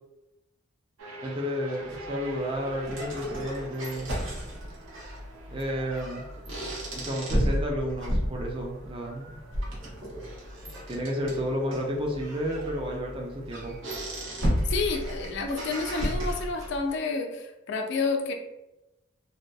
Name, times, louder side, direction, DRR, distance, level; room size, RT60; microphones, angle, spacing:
sound 1, 1.0-15.9, right 3 dB, 85° right, 0.5 m, -49 dB
voice 1, 1.2-4.1 5.5-6.3 6.9-9.4 10.9-13.7, equal, 25° right, 0 dB, 0.4 m, -31 dB
sound 2, 1.9-16.9, equal, 65° right, 0.8 m, -33 dB
voice 2, 14.7-18.3, left 4 dB, 60° left, 4 dB, 0.3 m, -30 dB
2.7 x 2.2 x 2.2 m, 0.94 s
head